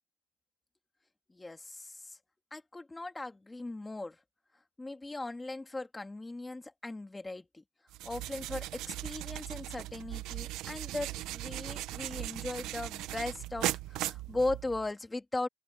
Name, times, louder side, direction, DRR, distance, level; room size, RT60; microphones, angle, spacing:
voice 1, 1.3-2.2 2.5-4.2 4.8-7.6 8.0-15.5, left 2 dB, 5° left, 2.4 m, -38 dB
sound 1, 7.9-14.9, right 16 dB, 40° right, 1.0 m, -38 dB
open air
supercardioid pair, 160°, 0 cm